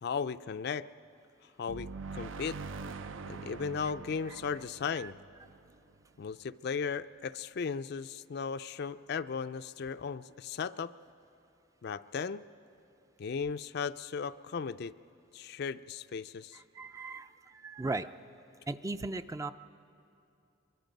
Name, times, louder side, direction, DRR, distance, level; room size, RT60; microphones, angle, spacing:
voice 1, 0.0-0.9 1.6-2.6 3.3-5.1 6.2-10.9 11.8-12.4 13.2-14.9 15.3-16.6, left 6 dB, 55° left, 13 dB, 0.4 m, -36 dB
sound 1, 1.7-6.3, right 4 dB, 80° right, 0.6 m, -44 dB
voice 2, 16.5-18.1 18.7-19.5, right 3 dB, 15° right, 11 dB, 0.4 m, -37 dB
23.5 x 23.0 x 5.3 m, 2.6 s
head